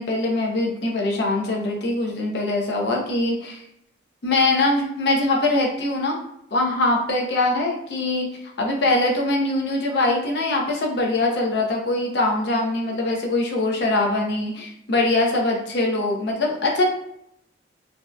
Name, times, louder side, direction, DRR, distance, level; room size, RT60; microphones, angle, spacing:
voice 1, 0.0-3.6 4.2-6.2 6.5-8.3 8.6-16.8, left 2 dB, 65° left, 0 dB, 0.5 m, -22 dB
2.6 x 2.2 x 2.3 m, 0.76 s
head